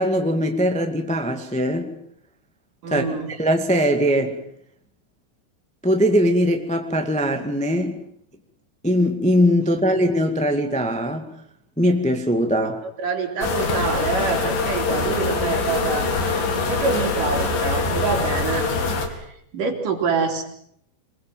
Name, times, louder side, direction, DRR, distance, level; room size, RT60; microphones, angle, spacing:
voice 1, 0.0-1.9 2.9-4.4 5.8-8.0 8.8-11.3 11.8-12.8, equal, 5° left, 1.0 m, -21 dB
voice 2, 2.8-3.3 13.0-16.1 16.5-20.4, right 4 dB, 60° right, 4.6 m, -26 dB
sound 1, 13.4-19.1, left 3 dB, 65° left, 4.4 m, -23 dB
25.5 x 21.5 x 7.6 m
omnidirectional pair, 4.3 m